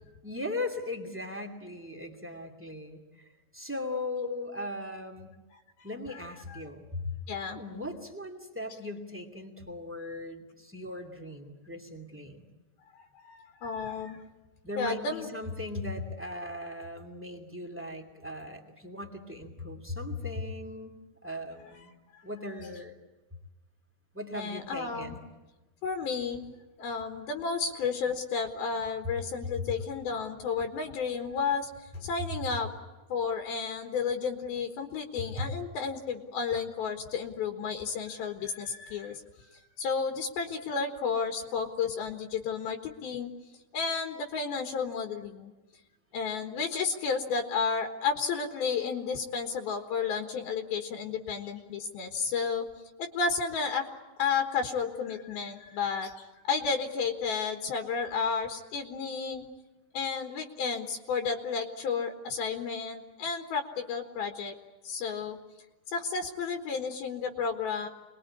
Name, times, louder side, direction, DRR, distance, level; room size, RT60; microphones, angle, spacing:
voice 1, 0.2-5.3 5.8-7.1 7.5-12.5 14.6-21.0 21.2-21.9 22.2-23.0 24.1-25.2 35.4-35.5, left 2 dB, 5° right, 4 dB, 1.6 m, -38 dB
voice 2, 7.3-7.6 13.2-14.2 14.8-15.3 24.3-25.2 25.8-26.5 26.8-32.7 33.1-43.3 43.7-45.5 46.1-52.7 53.0-53.9 54.2-59.5 59.9-64.6 64.8-65.4 65.9-67.9, left 5 dB, 75° left, 5 dB, 3.3 m, -32 dB
27.0 x 21.5 x 9.8 m, 1.1 s
omnidirectional pair, 4.4 m